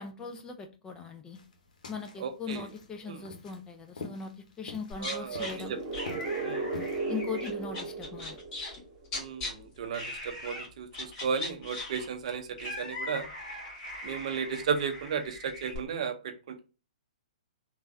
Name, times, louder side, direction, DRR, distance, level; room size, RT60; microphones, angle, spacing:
voice 1, 0.0-1.4 1.9-5.7 7.1-8.4, left 5 dB, 15° left, 0.5 m, -40 dB
sound 1, 1.3-7.0, left 4 dB, 70° left, 0.8 m, -46 dB
voice 2, 2.2-2.7 3.1-3.2 5.0-5.8 6.4-6.7 9.1-13.3 14.0-16.6, right 6 dB, 55° right, 0.6 m, -34 dB
sound 2, 4.9-5.5 5.9-8.8 9.0-9.5 9.9-10.7 10.9-15.8, left 2 dB, 35° left, 1.7 m, -40 dB
sound 3, 5.4-9.1, right 3 dB, 35° right, 0.9 m, -36 dB
3.3 x 2.2 x 2.6 m
hypercardioid pair, 125°, 4 cm